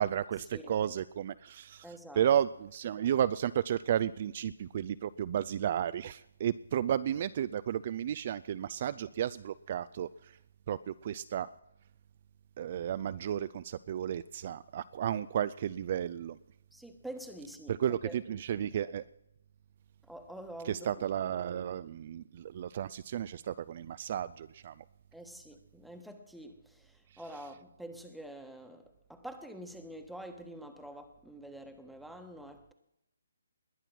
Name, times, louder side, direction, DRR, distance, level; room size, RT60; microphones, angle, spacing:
voice 1, 0.0-10.4 10.7-11.5 12.6-16.4 17.7-19.1 20.6-24.8 27.1-27.2, right 9 dB, 40° right, 0.4 m, -33 dB
voice 2, 1.8-2.3 16.7-17.7 18.0-18.2 20.0-21.0 25.1-32.7, right 1 dB, ahead, 1.3 m, -47 dB
20.5 x 9.0 x 6.0 m
figure-of-eight pair, 145°, 0 cm